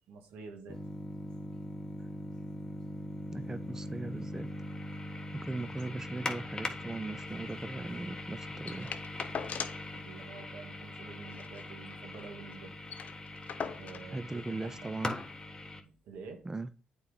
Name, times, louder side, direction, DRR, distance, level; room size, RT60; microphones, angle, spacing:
voice 1, 0.1-0.8 9.9-12.7 13.8-14.9 16.0-16.5, right 4 dB, 85° right, 1.6 m, -48 dB
sound 1, 0.7-15.8, left 2 dB, 25° left, 1.4 m, -41 dB
voice 2, 3.3-4.5 5.4-8.9 14.1-15.2 16.4-16.7, right 2 dB, 20° right, 0.5 m, -39 dB
sound 2, 8.7-9.9 10.3-10.4 10.6-10.8 11.2-12.3 12.6-12.7 12.9-14.1 15.0-15.1, left 7 dB, 65° left, 0.7 m, -41 dB
8.3 x 4.5 x 3.8 m
cardioid pair, 65°, 3 cm